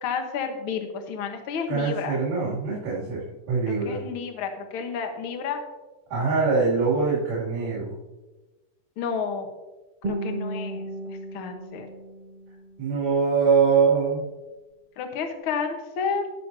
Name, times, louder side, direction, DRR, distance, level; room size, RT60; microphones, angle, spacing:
voice 1, 0.0-2.2 3.7-5.6 9.0-9.5 10.0-11.9 15.0-16.3, left 6 dB, 60° left, 5 dB, 1.5 m, -31 dB
voice 2, 1.7-4.0 6.1-8.0 12.8-14.2, right 5 dB, 85° right, -9 dB, 4.4 m, -23 dB
Guitar, 10.0-13.0, right 1 dB, 20° right, 1.4 m, -35 dB
19.0 x 6.5 x 2.7 m, 1.1 s
omnidirectional pair, 3.7 m